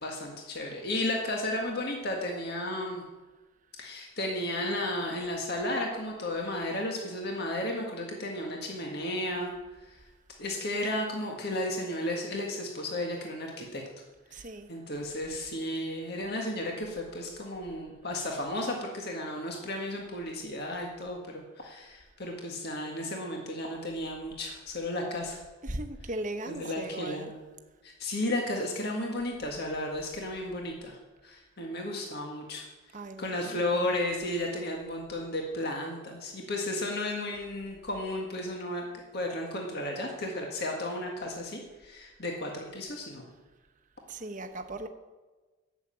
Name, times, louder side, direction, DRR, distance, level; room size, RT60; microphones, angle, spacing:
voice 1, 0.0-3.0 3.8-9.5 9.8-10.0 10.4-13.8 14.3-14.4 14.7-25.4 26.5-27.4 27.8-31.0 31.2-32.7 33.2-43.3, left 1 dB, 50° left, 1.8 m, -33 dB
voice 2, 14.3-14.7 25.6-27.3 32.9-33.9 44.1-44.9, right 1 dB, 40° right, 1.0 m, -38 dB
12.0 x 7.4 x 8.8 m
head